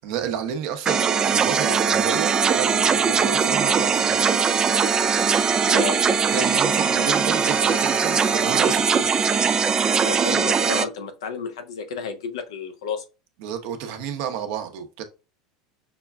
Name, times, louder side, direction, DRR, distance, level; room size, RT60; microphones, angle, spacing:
voice 1, 0.0-4.2 6.3-9.1 13.4-15.0, right 8 dB, 65° right, 0.8 m, -31 dB
sound 1, 0.8-10.8, right 6 dB, 25° right, 0.3 m, -20 dB
voice 2, 5.7-6.0 10.0-13.0, left 5 dB, 80° left, 0.8 m, -31 dB
5.9 x 2.3 x 2.3 m
hypercardioid pair, 95°, 3 cm